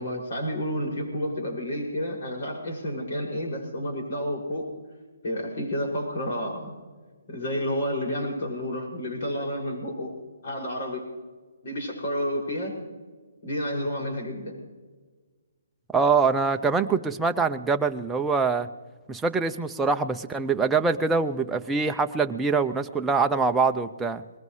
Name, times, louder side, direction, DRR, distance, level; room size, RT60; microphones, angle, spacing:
voice 1, 0.0-4.7 5.2-6.7 7.3-10.1 10.4-11.1 11.6-12.8 13.4-14.6, equal, 55° left, -1 dB, 6.3 m, -30 dB
voice 2, 15.9-18.7 19.1-24.2, right 4 dB, 5° right, 5 dB, 0.6 m, -24 dB
21.0 x 20.5 x 3.3 m, 1.4 s
hypercardioid pair, 150°, 0 cm